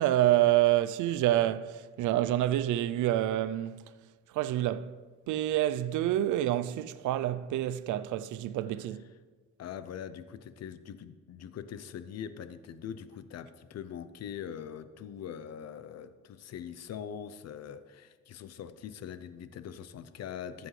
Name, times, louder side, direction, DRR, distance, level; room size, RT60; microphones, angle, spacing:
voice 1, 0.0-3.8 4.3-5.0 5.3-9.0, right 13 dB, 75° right, 0.5 m, -27 dB
voice 2, 9.6-20.7, left 8 dB, 60° left, 0.7 m, -42 dB
14.0 x 7.9 x 3.3 m
cardioid pair, 90°, 30 cm